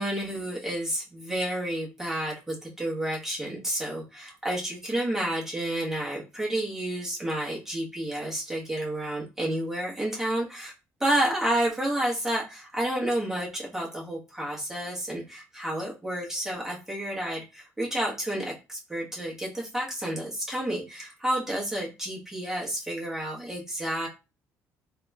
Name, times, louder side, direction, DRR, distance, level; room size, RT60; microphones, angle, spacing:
voice 1, 0.0-10.4 11.0-24.1, right 1 dB, 10° right, -3 dB, 1.2 m, -30 dB
3.7 x 2.9 x 2.3 m, 0.29 s
cardioid pair, 100°, 6 cm